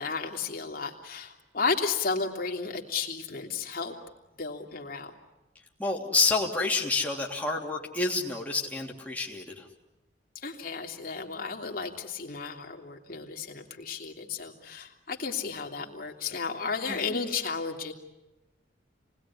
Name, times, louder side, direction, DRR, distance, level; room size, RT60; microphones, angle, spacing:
voice 1, 0.0-4.0 4.4-5.1 10.4-17.9, left 4 dB, 55° left, 2 dB, 3.0 m, -33 dB
voice 2, 5.8-9.6 16.9-17.0, left 3 dB, 10° left, -1 dB, 3.1 m, -28 dB
28.5 x 20.0 x 9.9 m, 1.0 s
head